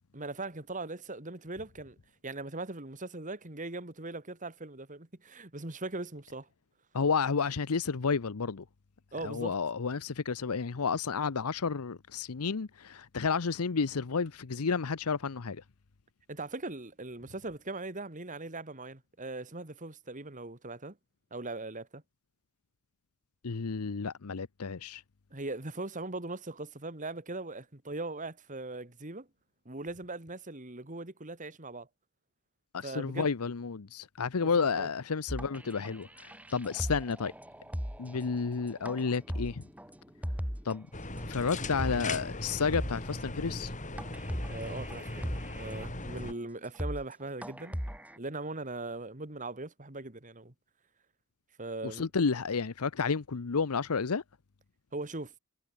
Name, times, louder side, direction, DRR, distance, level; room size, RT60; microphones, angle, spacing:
voice 1, 0.1-2.0 2.2-6.5 9.1-9.6 16.3-21.0 21.3-22.0 25.3-29.3 29.7-31.9 32.8-33.3 34.4-34.9 44.5-47.8 48.2-50.5 51.6-52.1 54.9-55.3, right 2 dB, 35° right, 2.2 m, -40 dB
voice 2, 6.9-8.6 9.2-15.6 23.4-25.0 32.7-37.3 38.0-39.6 40.6-40.9 41.3-43.8 51.8-54.2, left 5 dB, 90° left, 0.8 m, -31 dB
sound 1, 35.3-40.8 41.2-41.3 41.6-42.1 42.4-42.5 42.7-43.2 43.7-43.8 44.0-45.9 46.3-46.4 46.6-47.1 47.4-48.2, equal, 5° right, 4.7 m, -38 dB
sound 2, 40.9-46.3, left 2 dB, 35° left, 4.5 m, -38 dB
head